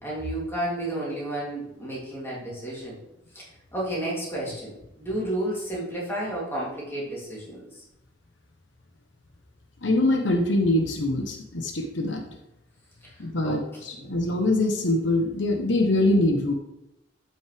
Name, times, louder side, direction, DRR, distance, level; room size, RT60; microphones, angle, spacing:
voice 1, 0.0-3.0 3.3-7.8 13.0-13.1 13.4-14.2, right 1 dB, 15° left, -6 dB, 3.2 m, -32 dB
voice 2, 9.8-12.2 13.2-16.5, left 1 dB, 75° left, 4 dB, 1.1 m, -23 dB
12.0 x 6.2 x 3.5 m, 0.89 s
head